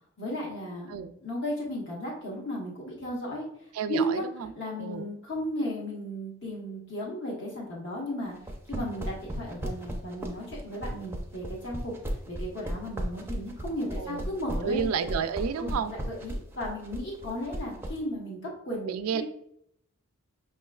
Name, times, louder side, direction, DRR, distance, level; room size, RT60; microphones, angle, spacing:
voice 1, 0.2-3.5 3.9-4.2 4.5-8.4 8.7-14.9 15.6-19.2, equal, 55° left, -3 dB, 1.1 m, -35 dB
voice 2, 3.7-4.5 4.8-5.1 8.7-9.1 14.0-14.3 14.6-15.9 18.8-19.2, right 6 dB, 85° right, 11 dB, 0.3 m, -31 dB
sound 1, 8.4-18.0, right 1 dB, 10° right, 0.4 m, -34 dB
5.8 x 3.0 x 2.3 m, 0.72 s
head